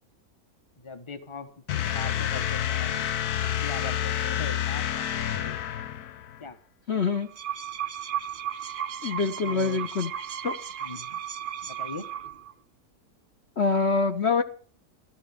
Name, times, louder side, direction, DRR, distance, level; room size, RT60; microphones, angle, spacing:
voice 1, 0.8-1.5 1.8-3.1 3.4-5.5 6.4-6.6 9.4-9.8 10.8-11.2 11.6-12.1, left 4 dB, 20° left, 8 dB, 1.3 m, -40 dB
sound 1, 1.7-6.4, left 10 dB, 80° left, 1.4 m, -29 dB
voice 2, 6.9-7.3 9.0-10.1 10.4-10.5 13.6-14.4, left 4 dB, 45° left, 5 dB, 1.3 m, -25 dB
sound 2, 7.1-12.5, right 9 dB, 45° right, 0.7 m, -35 dB
14.5 x 13.5 x 5.1 m, 0.42 s
omnidirectional pair, 1.6 m